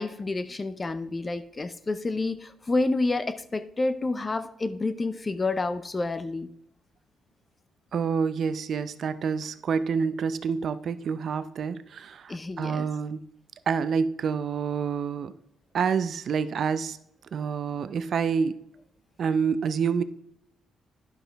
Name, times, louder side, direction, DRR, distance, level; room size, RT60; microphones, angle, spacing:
voice 1, 0.0-6.5 12.3-12.9, left 2 dB, 25° left, 12 dB, 0.5 m, -29 dB
voice 2, 7.9-13.2 13.7-15.3 15.7-17.0 17.3-18.6 19.2-20.0, right 6 dB, 55° right, 12 dB, 0.5 m, -27 dB
10.5 x 5.7 x 3.5 m, 0.75 s
cardioid pair, 90°, 0 cm